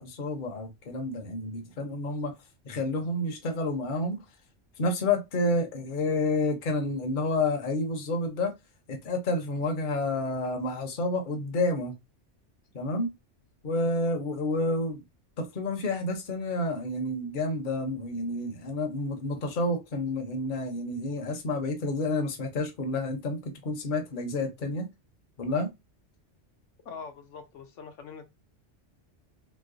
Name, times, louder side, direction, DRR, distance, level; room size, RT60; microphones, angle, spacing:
voice 1, 0.0-2.3 2.6-4.2 4.8-8.5 8.9-11.9 12.7-13.1 13.6-15.0 15.4-24.9 25.4-25.7, left 2 dB, 45° left, 0.8 m, -29 dB
voice 2, 26.8-28.2, left 5 dB, 80° left, 1.0 m, -43 dB
3.1 x 2.0 x 3.7 m
omnidirectional pair, 1.3 m